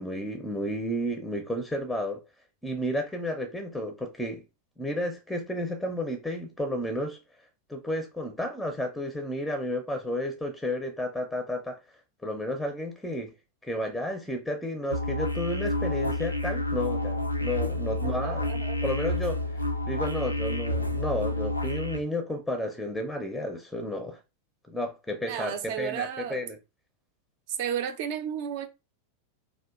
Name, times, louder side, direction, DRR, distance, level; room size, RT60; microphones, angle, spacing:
voice 1, 0.0-2.2 2.6-4.4 4.8-7.2 7.7-11.8 12.2-13.3 13.6-19.4 19.9-24.2 24.7-26.6, left 1 dB, 5° left, 0.6 m, -32 dB
sound 1, 14.9-22.0, left 1 dB, 90° left, 0.4 m, -29 dB
voice 2, 18.0-18.8 25.3-26.4 27.5-28.7, right 9 dB, 50° right, 0.6 m, -33 dB
2.8 x 2.4 x 3.5 m
figure-of-eight pair, 90°, 0 cm